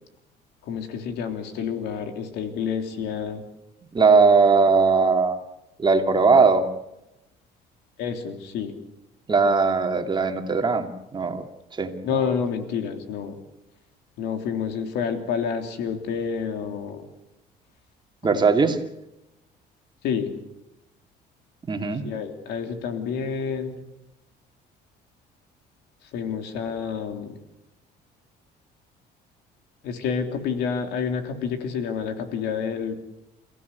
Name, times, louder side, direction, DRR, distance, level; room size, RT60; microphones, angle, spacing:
voice 1, 0.7-3.5 8.0-8.7 12.0-13.4 14.2-17.1 18.3-18.4 20.0-20.3 22.0-23.7 26.1-27.3 29.8-32.9, left 6 dB, 85° left, 6 dB, 3.3 m, -29 dB
voice 2, 3.9-5.4 5.8-6.7 9.3-11.4 11.7-11.9 18.2-18.8 21.7-22.0, right 4 dB, 25° right, 5 dB, 2.6 m, -19 dB
29.0 x 16.0 x 8.3 m, 0.92 s
cardioid pair, 110°, 17 cm